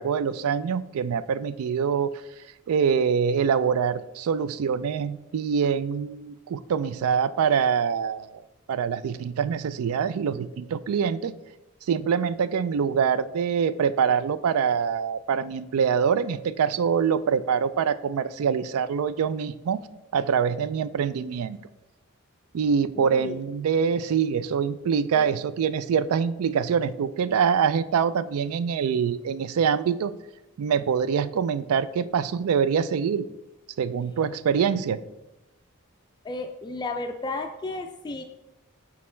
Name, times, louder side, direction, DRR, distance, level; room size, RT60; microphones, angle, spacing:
voice 1, 0.0-2.2 2.7-8.3 8.7-11.3 11.9-19.8 20.1-21.6 22.5-30.1 30.6-33.3 33.8-35.0, right 7 dB, 75° right, 15 dB, 0.3 m, -24 dB
voice 2, 22.9-23.4 25.1-25.3 36.2-38.2, left 2 dB, 20° left, 6 dB, 0.3 m, -33 dB
6.4 x 4.1 x 4.3 m, 0.96 s
head